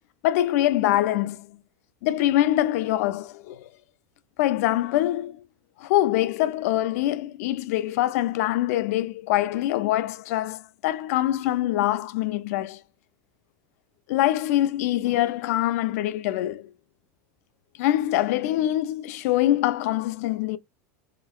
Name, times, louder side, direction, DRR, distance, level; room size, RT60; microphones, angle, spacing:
voice 1, 0.2-1.6 2.0-3.7 4.4-5.4 5.8-12.8 14.1-16.7 17.8-20.6, left 14 dB, 70° left, 0.4 m, -24 dB
3.1 x 2.9 x 2.2 m
supercardioid pair, 155°, 9 cm